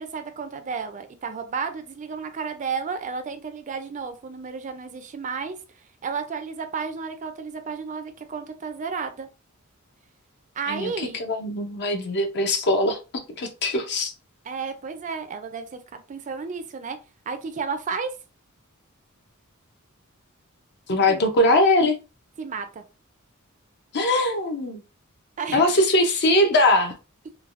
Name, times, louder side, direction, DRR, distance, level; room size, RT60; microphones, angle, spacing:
voice 1, 0.0-5.6 6.0-9.3 10.6-11.2 14.4-17.0 17.3-18.1 21.1-21.2 22.4-22.8 25.4-25.6, right 5 dB, 35° right, 0.4 m, -32 dB
voice 2, 10.7-13.0 13.4-14.1 20.9-22.0 23.9-24.8 25.5-26.9, left 1 dB, 50° left, 0.6 m, -21 dB
3.2 x 2.2 x 2.5 m
head